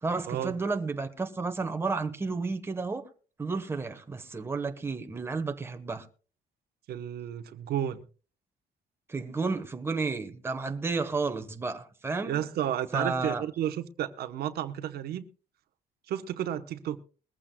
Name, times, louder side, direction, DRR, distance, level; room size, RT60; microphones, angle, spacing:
voice 1, 0.0-3.1 3.4-6.0 9.1-12.4 12.9-13.4, right 4 dB, 15° right, 1.1 m, -32 dB
voice 2, 6.9-8.0 12.2-15.2 16.1-17.0, right 11 dB, 70° right, 1.0 m, -32 dB
21.5 x 15.0 x 2.2 m
cardioid pair, 140°, 17 cm